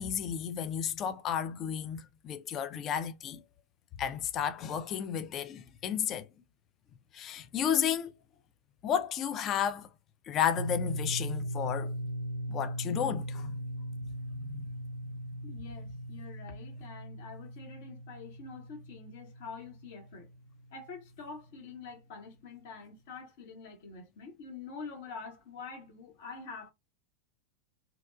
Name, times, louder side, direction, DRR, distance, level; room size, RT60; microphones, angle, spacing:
voice 1, 0.0-3.4 4.0-6.3 7.1-8.1 8.8-9.9 10.3-11.9 12.5-13.6 14.4-14.7, left 8 dB, 30° left, 0.3 m, -32 dB
sound 1, 10.6-21.1, right 1 dB, 85° right, 0.4 m, -39 dB
voice 2, 15.4-20.3 20.7-26.7, left 4 dB, 50° left, 0.9 m, -46 dB
2.8 x 2.2 x 2.3 m
figure-of-eight pair, 90°, 0 cm